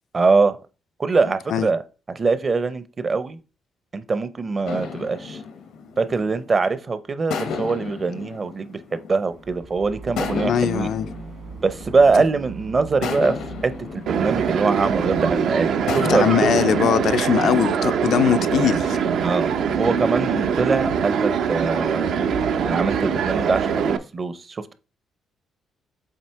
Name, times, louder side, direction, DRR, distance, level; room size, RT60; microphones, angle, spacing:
voice 1, 0.1-0.6 1.0-1.8 2.1-3.4 3.9-5.4 6.0-10.9 11.6-13.4 13.6-16.5 19.2-22.1 22.6-24.7, right 4 dB, 35° right, 0.6 m, -23 dB
sound 1, 4.6-6.7 7.3-9.6 10.2-12.4 13.0-15.2 15.9-16.8, left 5 dB, 85° left, 0.9 m, -33 dB
sound 2, 9.3-14.5, right 5 dB, 55° right, 1.4 m, -40 dB
voice 2, 10.3-11.1 16.1-19.0, left 9 dB, 70° left, 0.4 m, -21 dB
sound 3, 14.1-24.0, right 7 dB, 75° right, 0.6 m, -23 dB
7.4 x 2.8 x 4.6 m
cardioid pair, 90°, 0 cm